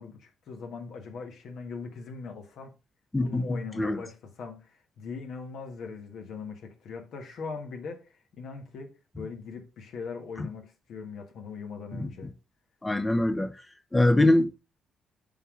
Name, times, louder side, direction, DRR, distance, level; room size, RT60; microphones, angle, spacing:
voice 1, 0.0-2.7 3.2-12.3, left 5 dB, 70° left, 1.4 m, -40 dB
voice 2, 3.1-4.0 11.9-12.1 12.8-13.5 13.9-14.5, left 1 dB, 15° left, 0.6 m, -23 dB
5.5 x 3.8 x 4.9 m
cardioid pair, 90°, 0 cm